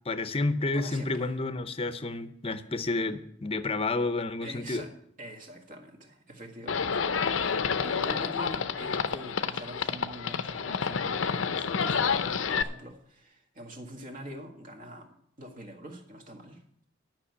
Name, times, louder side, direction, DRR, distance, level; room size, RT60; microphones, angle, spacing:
voice 1, 0.1-4.9, left 3 dB, 30° left, 11 dB, 0.7 m, -30 dB
voice 2, 0.7-1.3 4.4-4.9 5.2-16.6, equal, 45° right, 3 dB, 1.8 m, -45 dB
Livestock farm animals working animals, 6.7-12.6, left 6 dB, 85° left, 0.6 m, -29 dB
11.5 x 6.1 x 8.2 m, 0.70 s
head